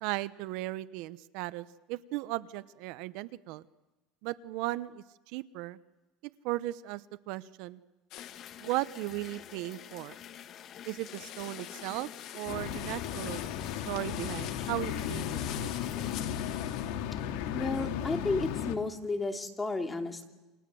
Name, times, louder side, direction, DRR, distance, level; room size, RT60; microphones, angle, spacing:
voice 1, 0.0-3.6 4.2-5.8 6.4-7.0 7.3-7.8 8.6-10.1 10.9-13.4 13.9-15.7, right 18 dB, 70° right, 15 dB, 0.9 m, -36 dB
sound 1, 8.1-8.6 10.9-17.0, left 13 dB, 60° left, 2.0 m, -46 dB
sound 2, 8.2-16.2, left 9 dB, 45° left, 1.5 m, -48 dB
sound 3, 12.5-18.8, left 9 dB, 75° left, 2.4 m, -35 dB
voice 2, 17.5-20.3, left 3 dB, 15° left, 4 dB, 2.8 m, -32 dB
29.0 x 26.5 x 7.8 m, 1.1 s
supercardioid pair, 125°, 0 cm